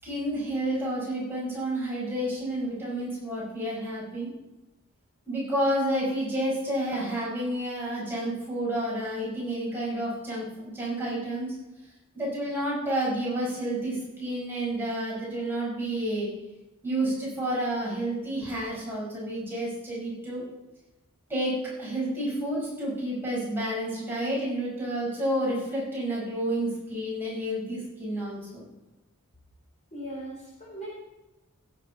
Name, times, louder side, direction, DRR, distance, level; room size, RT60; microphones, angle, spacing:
voice 1, 0.0-4.3 5.3-11.5 12.1-16.3 16.8-20.5 21.3-21.5 21.8-28.6, right 1 dB, 10° right, -7 dB, 5.3 m, -30 dB
voice 2, 29.9-30.9, right 1 dB, 35° left, -4 dB, 4.0 m, -39 dB
16.5 x 8.4 x 4.3 m, 1.0 s
head